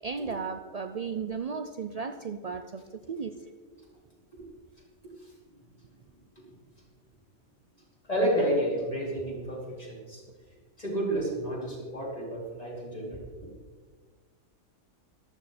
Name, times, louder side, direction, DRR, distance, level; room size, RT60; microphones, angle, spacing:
voice 1, 0.0-3.3, right 5 dB, 70° right, 7 dB, 0.3 m, -35 dB
voice 2, 8.1-10.2 10.8-13.5, right 1 dB, 25° left, -5 dB, 4.5 m, -30 dB
14.0 x 12.5 x 4.2 m, 1.5 s
omnidirectional pair, 1.4 m